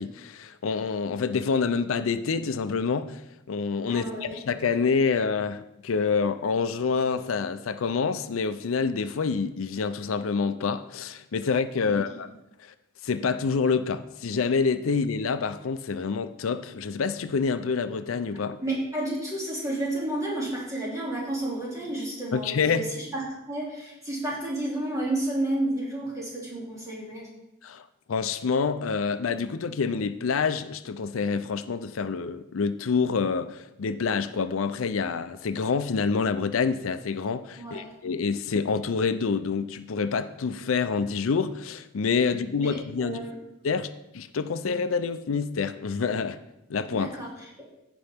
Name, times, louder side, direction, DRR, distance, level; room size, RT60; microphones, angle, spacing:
voice 1, 0.0-3.2 3.5-4.0 4.3-12.3 12.6-12.7 13.0-18.6 22.3-22.9 27.6-43.2 43.6-46.4 46.7-47.2, left 5 dB, 90° left, 0.5 m, -27 dB
voice 2, 3.8-4.4 11.8-12.0 18.6-27.3 37.6-37.9 42.5-43.4 46.9-47.7, right 1 dB, 15° right, 2.6 m, -31 dB
15.5 x 5.3 x 3.5 m
head